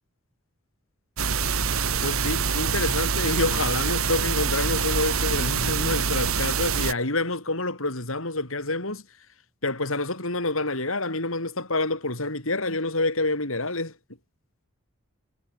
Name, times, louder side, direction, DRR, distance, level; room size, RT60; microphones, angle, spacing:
sound 1, 1.2-6.9, right 5 dB, 80° right, 2.3 m, -25 dB
voice 1, 2.0-9.0 9.6-13.9, left 2 dB, 70° left, 6.4 m, -27 dB
head